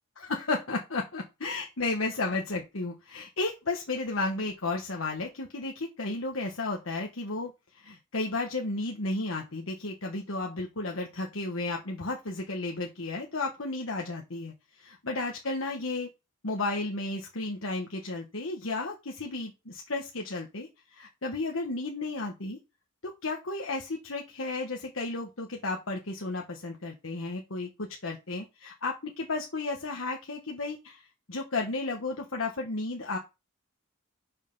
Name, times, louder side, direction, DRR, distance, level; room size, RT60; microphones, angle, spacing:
voice 1, 0.2-16.1 16.4-22.6 23.0-33.2, left 3 dB, 75° left, 1 dB, 1.3 m, -33 dB
6.5 x 5.5 x 5.4 m, 0.25 s
head